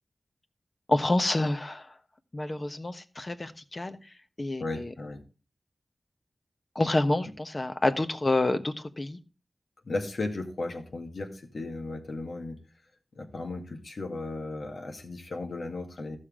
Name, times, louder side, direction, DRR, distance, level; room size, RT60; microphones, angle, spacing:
voice 1, 0.9-2.0 2.3-4.0 4.4-4.9 6.7-9.2, left 2 dB, 40° left, 9 dB, 1.2 m, -28 dB
voice 2, 4.6-5.2 9.8-12.6 13.1-16.2, left 2 dB, 80° left, 3 dB, 2.2 m, -35 dB
15.0 x 6.5 x 3.7 m, 0.33 s
wide cardioid pair, 70°, 0 cm